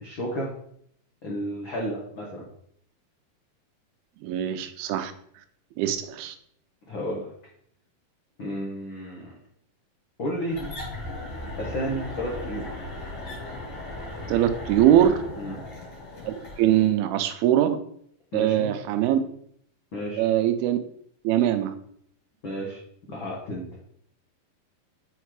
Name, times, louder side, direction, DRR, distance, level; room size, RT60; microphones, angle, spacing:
voice 1, 0.0-0.5 1.2-2.5 6.9-7.3 8.4-9.3 10.2-10.6 11.6-12.7 15.4-15.5 18.3-18.7 19.9-20.2 22.4-22.8 23.1-23.7, equal, 70° left, -3 dB, 1.1 m, -32 dB
voice 2, 4.2-5.1 5.8-6.4 14.3-15.2 16.2-17.8 18.3-19.2 20.2-20.8 21.2-21.7, right 11 dB, 80° right, 9 dB, 2.5 m, -22 dB
sound 1, 10.5-16.9, left 1 dB, 40° left, 3.0 m, -37 dB
5.8 x 5.4 x 4.7 m, 0.66 s
omnidirectional pair, 4.5 m